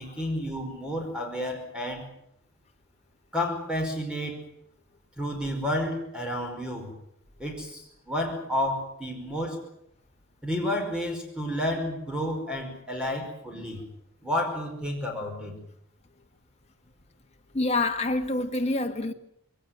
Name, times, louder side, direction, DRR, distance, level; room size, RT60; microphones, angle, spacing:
voice 1, 0.0-2.0 3.3-4.4 5.2-6.9 7.4-9.6 10.4-13.8 14.2-15.6, left 1 dB, 5° right, 5.1 m, -31 dB
voice 2, 17.5-19.1, left 2 dB, 30° left, 1.7 m, -26 dB
22.0 x 18.0 x 9.2 m
head